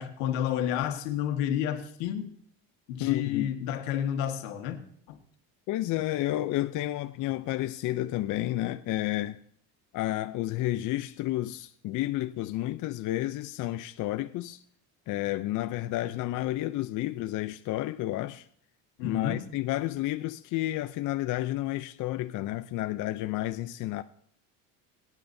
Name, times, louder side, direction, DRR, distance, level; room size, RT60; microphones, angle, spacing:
voice 1, 0.0-2.3 2.9-4.8 5.1-5.2 19.0-19.4, left 10 dB, 85° left, 1.6 m, -30 dB
voice 2, 3.0-3.5 5.7-9.4 9.9-14.6 15.1-18.5 19.0-24.0, left 15 dB, 55° left, 0.5 m, -31 dB
23.0 x 9.1 x 2.7 m
supercardioid pair, 100°, 37 cm